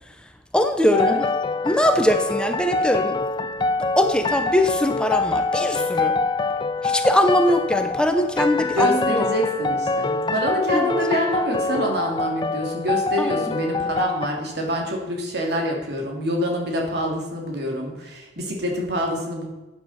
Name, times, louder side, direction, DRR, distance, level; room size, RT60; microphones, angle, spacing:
voice 1, 0.5-1.3 1.6-3.2 4.0-6.2 6.8-9.3 10.7-10.9 13.2-13.3, left 1 dB, 5° left, 6 dB, 0.7 m, -21 dB
sound 1, 0.9-14.3, left 3 dB, 25° left, 0.4 m, -25 dB
voice 2, 8.6-19.4, equal, 60° right, 0 dB, 2.8 m, -26 dB
12.5 x 9.4 x 4.3 m, 1.1 s
head